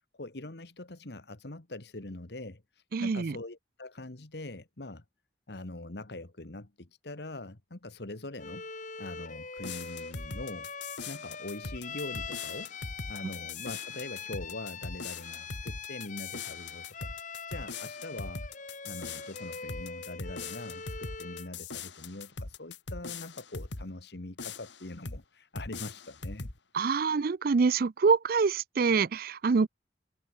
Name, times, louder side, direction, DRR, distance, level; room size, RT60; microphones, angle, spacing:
voice 1, 0.1-5.0 5.5-8.6 9.0-10.7 11.0-12.8 13.1-17.1 17.5-18.5 18.8-26.5, left 2 dB, 65° left, 1.7 m, -43 dB
voice 2, 2.9-3.4 26.7-29.7, right 5 dB, 55° right, 0.4 m, -25 dB
Bowed string instrument, 8.4-21.6, left 5 dB, 45° left, 7.2 m, -43 dB
sound 1, 9.6-23.9 24.4-25.2 25.5-26.6, left 4 dB, 80° left, 2.3 m, -41 dB
head